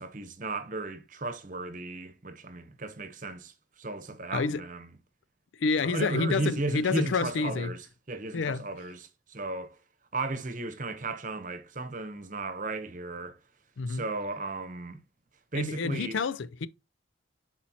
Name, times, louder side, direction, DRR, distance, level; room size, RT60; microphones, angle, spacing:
voice 1, 0.0-4.9 5.8-9.8 10.1-13.4 13.9-15.0 15.5-16.2, right 2 dB, 40° right, 0.9 m, -35 dB
voice 2, 4.3-4.6 5.6-7.7 8.3-8.7 13.8-14.1 15.5-16.7, left 4 dB, 80° left, 0.5 m, -28 dB
10.5 x 4.4 x 2.9 m
head